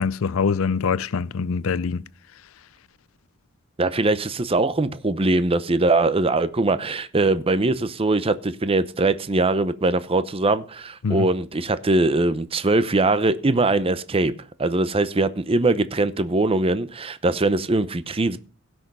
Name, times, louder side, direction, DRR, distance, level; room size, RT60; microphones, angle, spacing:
voice 1, 0.0-2.0 11.0-11.3, left 5 dB, 70° left, 0.5 m, -24 dB
voice 2, 3.8-14.3 14.6-18.4, right 2 dB, 25° right, 0.7 m, -21 dB
16.5 x 6.3 x 5.4 m
head